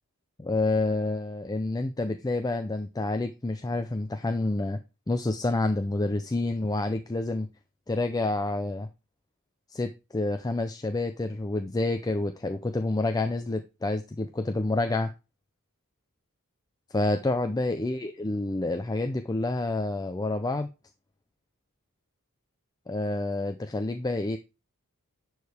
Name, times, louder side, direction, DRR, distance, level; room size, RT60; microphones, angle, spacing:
voice 1, 0.4-4.8 5.1-7.5 7.9-8.9 9.7-15.1 16.9-20.7 22.9-24.4, left 2 dB, 15° left, 7 dB, 0.5 m, -28 dB
11.0 x 4.8 x 3.4 m, 0.27 s
head